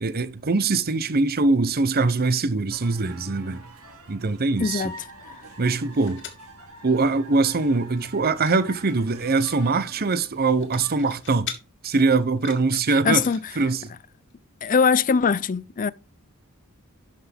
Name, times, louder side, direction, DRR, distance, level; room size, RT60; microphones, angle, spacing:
voice 1, 0.0-3.7 4.1-4.9 5.6-6.2 6.8-11.5 11.8-13.3 13.6-13.9, right 3 dB, 45° right, 0.8 m, -22 dB
sound 1, 2.7-10.9, right 2 dB, 80° right, 2.8 m, -45 dB
voice 2, 4.6-4.9 12.9-13.4 14.6-15.9, left 5 dB, 40° left, 0.4 m, -21 dB
sound 2, 5.4-6.5 6.9-7.0 7.3-7.6 7.9-8.6 8.9-9.6 10.3-11.6 12.2-13.4 14.3-14.4 14.6-14.7, left 8 dB, 60° left, 2.1 m, -41 dB
12.0 x 5.8 x 3.5 m
head